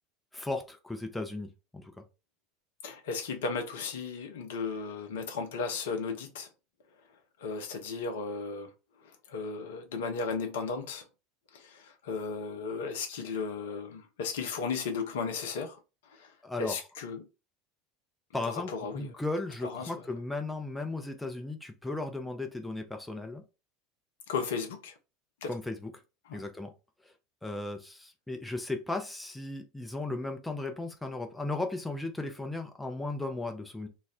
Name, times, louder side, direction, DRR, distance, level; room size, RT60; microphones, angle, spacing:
voice 1, 0.3-1.9 16.4-16.7 18.3-18.7 18.9-23.4 25.5-25.9 26.3-26.7 27.0-27.1 27.4-33.9, left 2 dB, 5° left, 0.5 m, -36 dB
voice 2, 2.8-6.5 7.4-8.7 9.0-11.0 11.5-15.8 16.1-17.3 18.4-19.1 19.6-19.9 24.3-24.9 25.4-25.5 26.3-26.4, left 5 dB, 65° left, 0.6 m, -35 dB
2.3 x 2.1 x 3.6 m
figure-of-eight pair, 75°, 0 cm